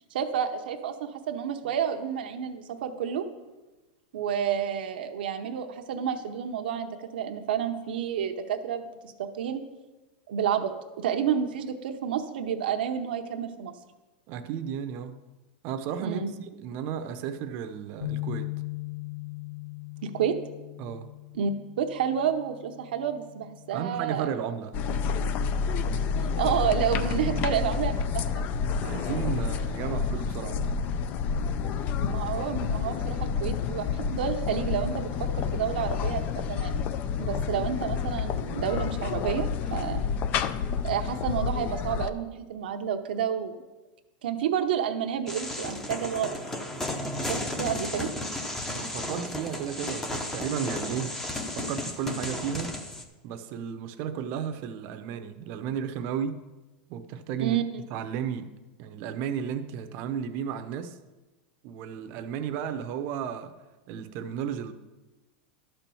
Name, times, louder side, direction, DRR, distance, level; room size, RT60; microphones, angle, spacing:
voice 1, 0.1-3.3 4.1-9.6 10.3-13.7 16.0-16.3 20.0-20.4 21.3-21.5 21.8-24.3 26.2-28.5 32.0-36.9 37.2-40.0 40.8-43.5 44.2-46.4 47.3-48.1 57.4-57.8, right 8 dB, 80° right, 0.8 m, -30 dB
voice 2, 14.3-15.2 15.6-18.5 20.8-21.1 23.7-24.8 27.0-27.6 28.8-30.6 48.8-51.1 51.5-52.8 53.2-56.4 56.9-57.6 57.9-58.5 58.8-61.0 61.6-63.6 63.9-64.7, right 8 dB, 40° right, 0.7 m, -34 dB
sound 1, 18.0-24.3, left 21 dB, 90° left, 0.8 m, -39 dB
sound 2, 24.7-42.1, left 6 dB, 35° left, 0.4 m, -29 dB
sound 3, 45.3-53.0, left 1 dB, 10° left, 0.7 m, -34 dB
12.0 x 4.5 x 6.9 m
supercardioid pair, 160°, 5 cm